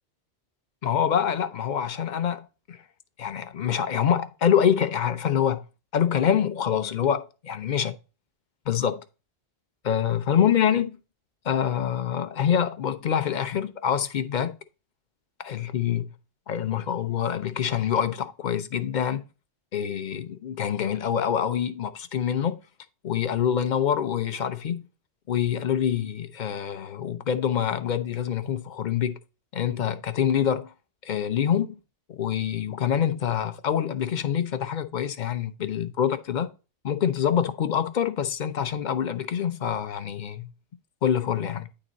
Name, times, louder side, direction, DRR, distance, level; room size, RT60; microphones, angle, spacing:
voice 1, 0.8-2.8 3.2-5.6 5.9-7.9 8.7-9.0 9.8-11.0 11.4-14.6 15.4-16.1 16.5-19.2 19.7-22.6 23.0-24.9 25.3-29.2 29.5-30.7 31.0-31.8 32.1-36.5 36.8-40.5 41.0-41.7, left 9 dB, 50° left, 0.7 m, -25 dB
9.8 x 3.9 x 4.0 m
omnidirectional pair, 1.2 m